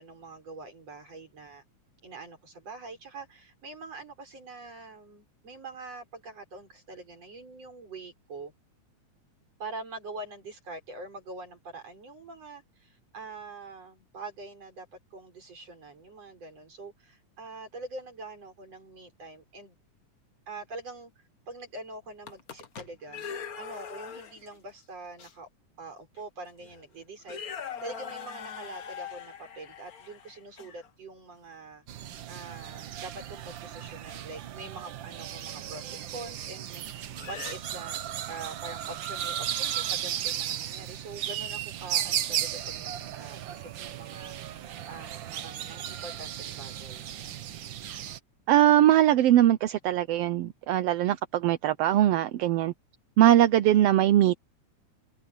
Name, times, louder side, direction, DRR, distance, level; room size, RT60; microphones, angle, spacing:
voice 1, 0.0-1.6 2.0-8.5 9.6-19.8 20.5-23.3 23.6-25.5 25.8-27.5 27.8-38.0 38.3-47.1, right 3 dB, 55° right, 7.4 m, -44 dB
sound 1, 22.1-24.6 25.2-25.3 26.2-26.3 26.6-26.8 27.2-30.9 34.1-34.2 36.0-36.1 37.1-37.5, left 7 dB, 60° left, 0.9 m, -41 dB
sound 2, 31.9-48.2, right 10 dB, 90° right, 1.0 m, -35 dB
voice 2, 48.5-52.7 53.2-54.4, right 12 dB, 75° right, 1.5 m, -21 dB
omnidirectional pair, 3.5 m